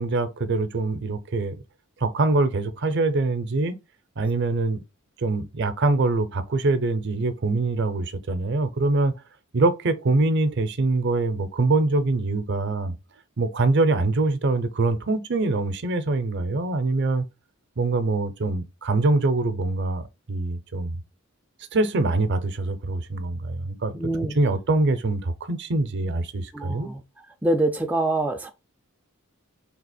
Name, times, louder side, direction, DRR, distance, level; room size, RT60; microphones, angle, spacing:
voice 1, 0.0-1.5 2.0-3.8 4.2-4.8 5.2-9.1 9.5-12.9 13.4-17.2 17.8-20.0 20.3-21.0 21.7-24.0 24.3-26.9, right 2 dB, 55° right, 0.6 m, -24 dB
voice 2, 24.0-24.4 26.5-27.0 27.4-28.5, right 2 dB, 5° right, 0.3 m, -25 dB
3.4 x 2.9 x 4.1 m
head